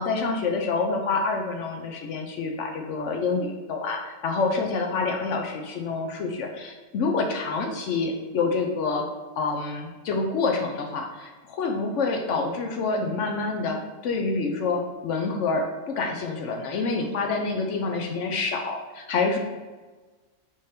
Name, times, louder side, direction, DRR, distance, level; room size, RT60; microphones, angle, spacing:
voice 1, 0.0-9.0 9.4-19.4, left 4 dB, 65° left, 3 dB, 0.8 m, -27 dB
3.6 x 3.3 x 4.1 m, 1.3 s
omnidirectional pair, 1.5 m